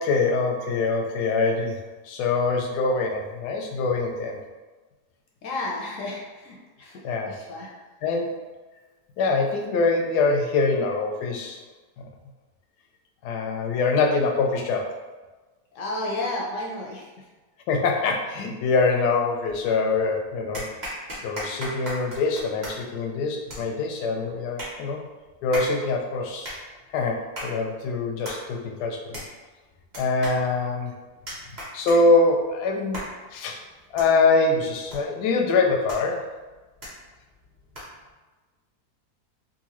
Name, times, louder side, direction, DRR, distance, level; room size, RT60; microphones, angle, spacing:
voice 1, 0.0-4.4 7.0-7.4 8.0-8.4 9.2-11.6 13.2-14.9 17.7-20.7 21.2-25.0 25.4-26.5 26.9-29.1 30.0-30.9 31.7-33.0 33.3-33.6 33.9-36.3, left 3 dB, 85° left, 2 dB, 1.1 m, -24 dB
voice 2, 5.4-7.7 15.7-17.3 31.5-31.6, left 2 dB, 65° left, -2 dB, 0.8 m, -32 dB
sound 1, 19.5-20.0 20.5-38.1, equal, 30° right, 1.0 m, -40 dB
3.8 x 2.5 x 2.9 m, 1.2 s
omnidirectional pair, 1.7 m